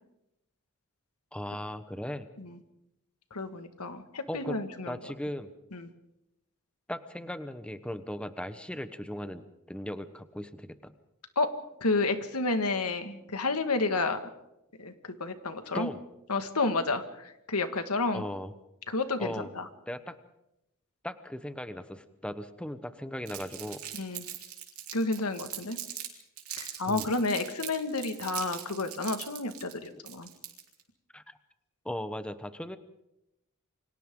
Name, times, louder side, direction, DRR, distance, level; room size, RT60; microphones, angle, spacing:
voice 1, 1.3-2.3 4.3-4.6 4.9-5.5 6.9-10.9 15.7-16.0 18.1-18.5 19.2-19.5 19.9-20.2 21.0-23.8 26.9-27.1 29.9-30.0 31.1-31.4 31.8-32.8, left 1 dB, 5° left, 10 dB, 1.1 m, -38 dB
voice 2, 3.3-5.0 5.7-5.9 11.4-11.5 11.8-14.2 14.8-15.9 16.3-18.2 18.9-19.7 23.9-24.2 24.9-25.8 26.6-30.3, left 3 dB, 85° left, 8 dB, 1.9 m, -30 dB
Crumpling crinkling, 23.3-26.1 26.4-30.8, right 11 dB, 70° right, 3.9 m, -40 dB
28.5 x 25.0 x 3.8 m, 0.86 s
head